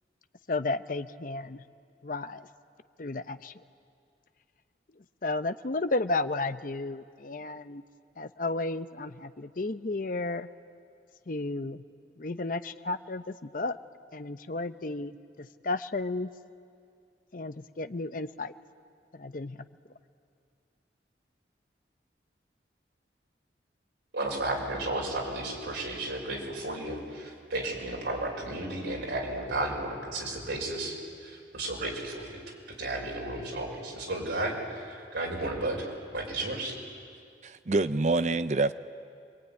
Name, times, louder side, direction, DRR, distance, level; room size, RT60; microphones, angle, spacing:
voice 1, 0.5-1.6 2.0-2.5 3.0-3.5 5.2-7.8 8.2-10.5 11.3-11.8 12.2-13.8 14.1-16.3 17.3-18.5 19.1-19.6, left 2 dB, 50° left, 11 dB, 0.7 m, -33 dB
voice 2, 24.1-30.9 31.2-32.4 32.7-36.8, right 2 dB, 90° right, -1 dB, 5.9 m, -33 dB
voice 3, 37.4-38.7, right 3 dB, 40° right, 12 dB, 0.6 m, -26 dB
27.0 x 22.5 x 9.5 m, 2.3 s
head